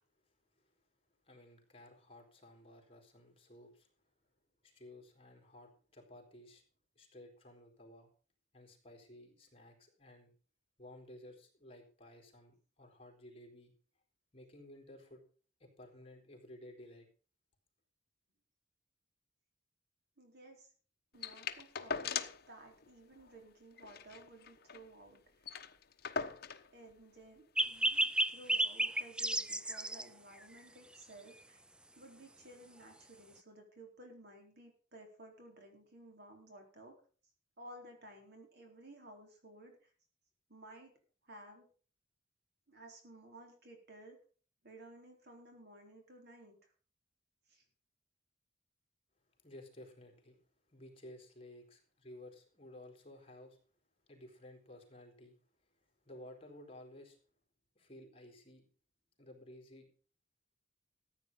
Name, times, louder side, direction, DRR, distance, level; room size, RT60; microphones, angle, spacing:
voice 1, 1.2-3.9 4.6-6.6 7.0-8.1 8.5-10.3 10.8-13.7 14.3-15.2 15.6-17.1 49.4-50.4 50.7-53.6 54.1-55.4 56.0-57.2 57.8-58.6 59.2-59.9, left 1 dB, 30° left, 2 dB, 4.0 m, -55 dB
voice 2, 20.2-20.7 21.1-22.2 22.5-25.5 26.7-31.6 32.0-37.0 37.6-39.9 40.5-40.9 41.2-41.6 42.7-44.2 44.6-46.6 47.5-47.6, right 1 dB, 60° right, 3 dB, 4.2 m, -56 dB
sound 1, 21.2-22.5 22.8-22.9 23.2-23.4 23.8-24.9 25.2-25.3 25.4-26.7 27.6-27.7, left 6 dB, 55° left, 1.0 m, -40 dB
sound 2, 27.6-30.0, right 1 dB, 5° right, 0.5 m, -32 dB
14.5 x 9.1 x 5.4 m, 0.40 s
head